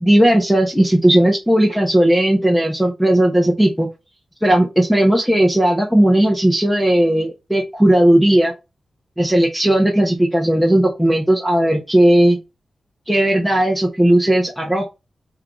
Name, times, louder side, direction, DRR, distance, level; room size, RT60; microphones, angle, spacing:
voice 1, 0.0-3.9 4.4-8.5 9.2-12.4 13.1-14.9, right 1 dB, ahead, -1 dB, 1.2 m, -15 dB
5.5 x 3.9 x 4.3 m, 0.25 s
wide cardioid pair, 180°, 0 cm